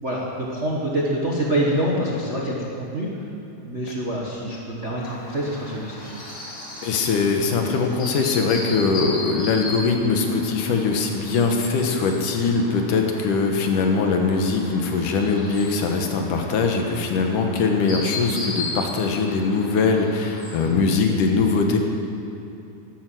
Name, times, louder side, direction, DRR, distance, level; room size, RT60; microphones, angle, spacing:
voice 1, 0.0-3.1 3.6-6.0 20.6-20.8, right 1 dB, 35° right, -4 dB, 1.1 m, -26 dB
Chirp tweet, 5.0-20.7, left 2 dB, 35° left, 3.8 m, -36 dB
voice 2, 6.8-21.8, left 4 dB, 85° left, 3 dB, 2.9 m, -22 dB
12.5 x 11.0 x 7.7 m, 2.8 s
omnidirectional pair, 3.6 m